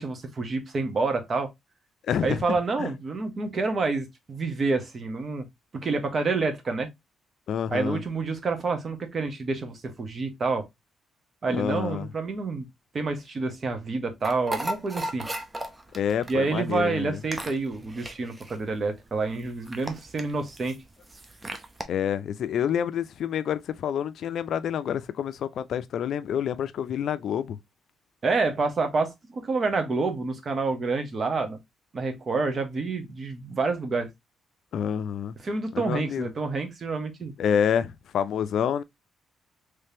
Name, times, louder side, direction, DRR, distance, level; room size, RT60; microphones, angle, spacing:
voice 1, 0.0-1.5 2.2-5.5 5.7-6.9 7.7-10.7 11.4-12.7 12.9-15.3 16.3-20.8 28.2-31.6 31.9-34.1 35.4-37.3, right 3 dB, 40° right, 1.2 m, -28 dB
voice 2, 2.0-2.9 7.5-8.0 11.5-12.1 15.9-17.2 21.9-27.6 34.7-35.3 35.7-36.3 37.4-38.8, left 8 dB, 70° left, 0.4 m, -28 dB
sound 1, 14.2-21.8, right 1 dB, 20° right, 0.7 m, -36 dB
3.4 x 3.3 x 2.7 m
cardioid pair, 90°, 0 cm